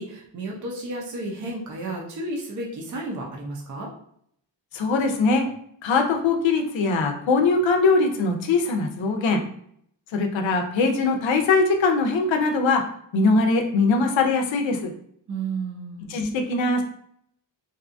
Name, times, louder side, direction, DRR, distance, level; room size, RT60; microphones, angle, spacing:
voice 1, 0.0-3.9 15.3-16.1, right 2 dB, 45° right, -2 dB, 0.6 m, -32 dB
voice 2, 4.7-5.5 5.8-9.4 10.1-12.8 13.1-14.9 16.1-16.8, left 3 dB, 80° left, 4 dB, 0.6 m, -21 dB
2.6 x 2.3 x 2.5 m, 0.67 s
wide cardioid pair, 130°, 45 cm